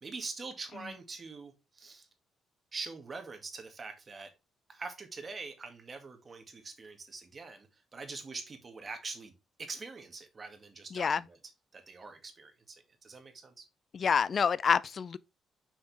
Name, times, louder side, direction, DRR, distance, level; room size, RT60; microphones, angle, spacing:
voice 1, 0.0-2.1 2.7-4.3 4.7-9.3 9.6-13.7, right 4 dB, 35° right, 2.1 m, -44 dB
voice 2, 13.9-15.2, left 6 dB, 45° left, 0.4 m, -27 dB
6.2 x 5.6 x 3.4 m
cardioid pair, 90°, 0 cm